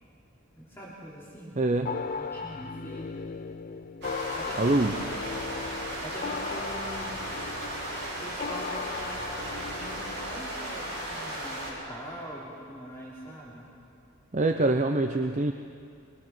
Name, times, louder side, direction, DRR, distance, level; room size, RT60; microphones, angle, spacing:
voice 1, 0.6-1.6 2.1-3.3 4.3-5.0 6.0-7.2 8.2-13.7, equal, 10° left, -7 dB, 3.3 m, -43 dB
voice 2, 1.6-2.1 4.6-5.0 14.3-15.5, right 2 dB, 35° right, 5 dB, 0.6 m, -25 dB
sound 1, 1.9-10.6, left 5 dB, 40° left, 0.4 m, -37 dB
sound 2, 4.0-11.7, right 1 dB, 55° right, 6.8 m, -36 dB
22.0 x 21.5 x 6.1 m, 2.4 s
head